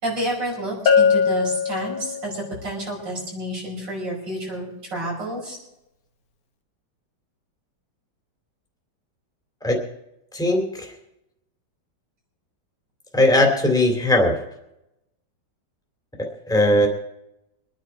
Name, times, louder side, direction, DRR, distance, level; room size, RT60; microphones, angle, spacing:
voice 1, 0.0-5.6, right 1 dB, 75° right, -3 dB, 6.4 m, -30 dB
Bell, 0.9-2.5, left 6 dB, 60° left, 1.7 m, -20 dB
voice 2, 10.3-10.9 13.1-14.3 16.2-16.9, left 1 dB, ahead, 1 dB, 2.7 m, -19 dB
24.5 x 10.0 x 4.6 m, 0.87 s
omnidirectional pair, 1.9 m